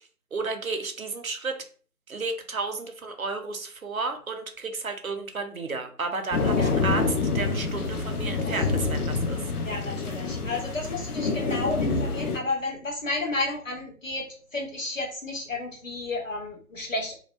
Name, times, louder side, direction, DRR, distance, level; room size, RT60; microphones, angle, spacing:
voice 1, 0.3-1.5 2.1-9.5, right 3 dB, 65° right, 6 dB, 0.5 m, -32 dB
sound 1, 6.3-12.4, left 4 dB, 80° left, 0.6 m, -27 dB
voice 2, 9.6-14.2 14.5-17.1, left 2 dB, 60° left, -1 dB, 1.0 m, -32 dB
2.6 x 2.1 x 2.3 m, 0.42 s
figure-of-eight pair, 170°, 45 cm